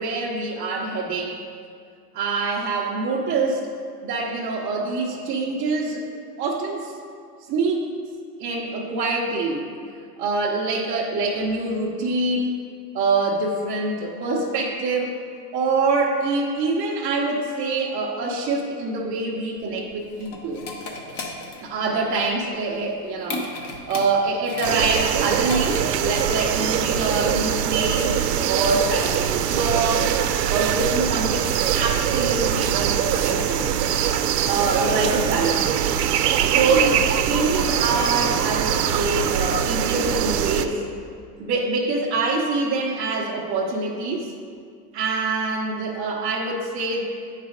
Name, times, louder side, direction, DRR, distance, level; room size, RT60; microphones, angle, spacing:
voice 1, 0.0-1.4 2.1-3.7 4.0-6.0 6.4-6.9 7.5-7.9 8.4-9.7 10.2-12.6 12.9-15.2 15.5-20.6 21.6-23.4 23.9-30.2 30.5-31.5 31.7-33.7 34.5-35.8 36.5-40.8 41.4-44.3 44.9-47.0, right 3 dB, 25° right, -4 dB, 0.8 m, -25 dB
sound 1, 19.6-26.0, left 2 dB, 30° left, 0.9 m, -35 dB
sound 2, 24.6-40.7, right 9 dB, 85° right, 0.6 m, -22 dB
8.9 x 4.1 x 5.1 m, 2.2 s
supercardioid pair, 135°, 47 cm